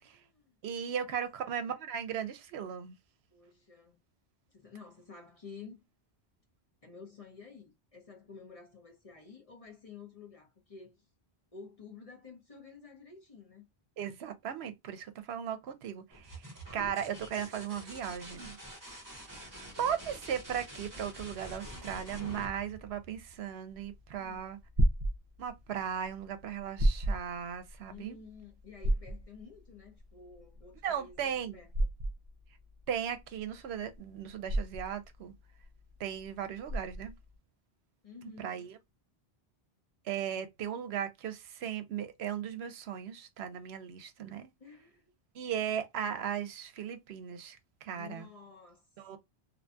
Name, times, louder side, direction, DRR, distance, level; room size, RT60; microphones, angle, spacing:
voice 1, 0.0-1.2 3.3-4.0 4.5-5.8 6.8-11.1 11.5-13.7 24.2-24.5 27.9-31.7 38.0-38.6 44.6-45.1 47.9-49.2, left 5 dB, 35° left, 0.8 m, -51 dB
voice 2, 0.6-3.0 14.0-18.6 19.2-19.5 19.8-24.6 25.4-28.2 30.8-31.6 32.9-35.3 36.0-37.1 38.4-38.8 40.0-44.5 45.3-48.3 49.0-49.2, right 8 dB, 75° right, 0.8 m, -37 dB
sound 1, 16.1-23.7 25.5-26.0, right 1 dB, 20° right, 0.9 m, -47 dB
sound 2, 23.8-37.3, right 1 dB, 45° right, 0.5 m, -33 dB
2.6 x 2.2 x 2.5 m
omnidirectional pair, 1.1 m